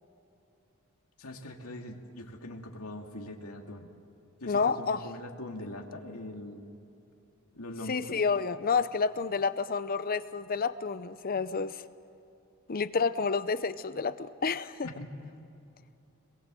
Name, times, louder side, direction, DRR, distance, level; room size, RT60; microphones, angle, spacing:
voice 1, 1.2-3.9 4.4-6.7 7.5-8.3 14.8-15.1, left 1 dB, 90° left, 2 dB, 2.4 m, -42 dB
voice 2, 4.5-5.0 7.9-11.8 12.7-14.9, left 5 dB, 40° left, 14 dB, 0.6 m, -29 dB
26.0 x 21.5 x 7.7 m, 2.8 s
head